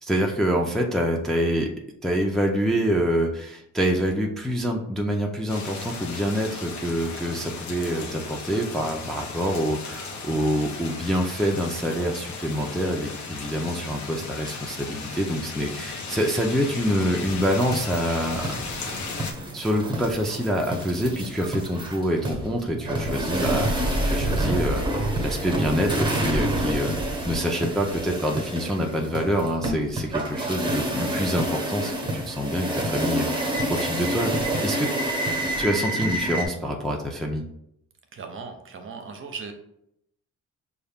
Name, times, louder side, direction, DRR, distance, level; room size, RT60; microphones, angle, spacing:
voice 1, 0.0-1.7 2.0-18.6 19.5-23.8 24.0-26.9 27.2-34.3 34.6-34.9 35.6-37.4, equal, ahead, 0 dB, 0.5 m, -26 dB
sound 1, 5.5-19.3, left 4 dB, 70° left, 0.8 m, -36 dB
sound 2, 17.2-36.5, right 1 dB, 15° right, 1.1 m, -28 dB
voice 2, 38.1-39.5, right 5 dB, 40° right, 5 dB, 0.7 m, -37 dB
5.3 x 2.4 x 3.5 m, 0.77 s
cardioid pair, 90°, 30 cm